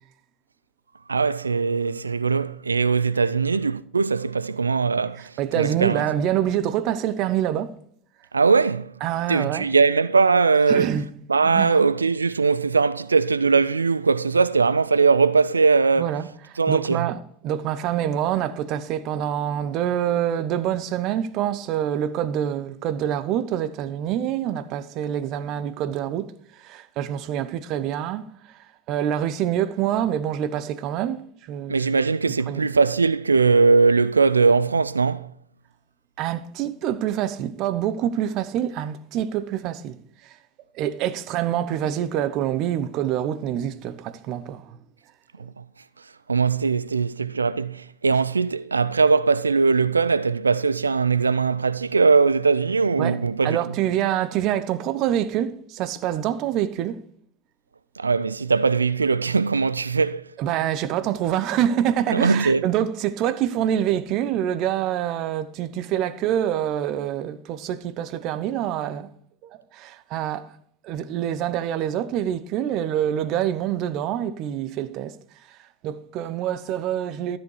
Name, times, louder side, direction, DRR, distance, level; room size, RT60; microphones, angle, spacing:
voice 1, 1.1-6.0 8.3-8.9 9.3-10.9 11.3-16.2 16.6-17.1 31.7-35.3 45.4-45.6 46.3-53.6 58.0-60.3 62.1-62.6, right 4 dB, 90° right, 0.3 m, -20 dB
voice 2, 5.4-7.7 9.0-9.7 10.7-11.0 11.4-11.8 16.0-26.3 26.6-28.6 28.9-31.8 32.3-32.7 36.2-40.0 40.2-40.4 40.7-44.8 53.0-53.2 53.4-57.0 60.4-69.1 69.4-70.5 70.8-75.1 75.5-75.6 75.8-77.4, right 10 dB, 50° right, 0.9 m, -26 dB
13.0 x 7.5 x 4.8 m
hypercardioid pair, 80°, 0 cm